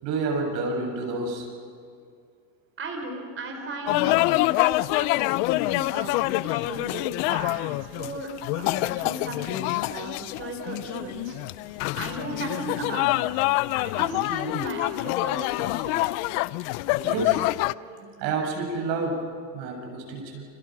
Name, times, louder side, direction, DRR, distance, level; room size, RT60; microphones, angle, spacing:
voice 1, 0.0-1.5 16.2-16.3 16.8-17.5 17.8-19.2 19.5-20.4, right 3 dB, 85° right, 1 dB, 7.5 m, -30 dB
voice 2, 2.8-11.4 11.6-13.3 13.8-16.0, right 2 dB, 25° right, 3 dB, 4.0 m, -36 dB
sound 1, 3.9-17.7, left 20 dB, 70° left, 0.7 m, -26 dB
30.0 x 29.5 x 6.1 m, 2.2 s
cardioid pair, 150°, 48 cm